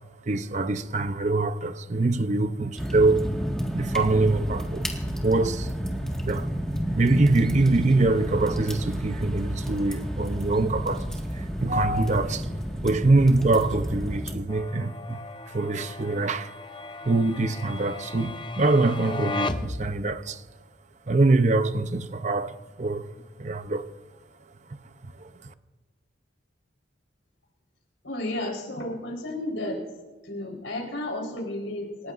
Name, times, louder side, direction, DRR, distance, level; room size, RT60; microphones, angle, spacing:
voice 1, 0.2-3.3 3.7-4.9 5.2-5.7 6.2-6.5 7.0-12.5 12.8-15.2 15.5-16.5 17.0-20.4 21.1-23.1 23.4-23.9 25.0-25.5, right 2 dB, 35° right, 0.6 m, -24 dB
sound 1, 2.8-14.4, equal, 5° left, 1.7 m, -31 dB
sound 2, 14.5-20.4, left 3 dB, 25° left, 0.6 m, -36 dB
voice 2, 28.0-29.9 30.2-32.1, left 1 dB, 80° left, 4.1 m, -32 dB
28.0 x 15.0 x 2.5 m
head